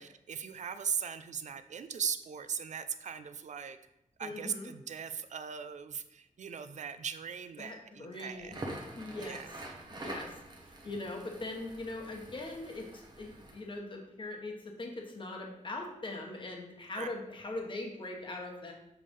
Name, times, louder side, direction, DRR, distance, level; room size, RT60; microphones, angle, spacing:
voice 1, 0.0-3.8 4.2-8.6 9.2-9.5 17.0-17.1, right 7 dB, 60° right, 10 dB, 0.4 m, -39 dB
voice 2, 4.2-4.7 7.6-8.6 9.0-9.4 9.9-10.3 10.6-18.7, left 2 dB, 35° left, 1 dB, 1.2 m, -41 dB
Crackle, 8.4-13.6, right 1 dB, 30° right, 1.0 m, -45 dB
7.2 x 3.3 x 5.4 m, 0.83 s
wide cardioid pair, 150°, 14 cm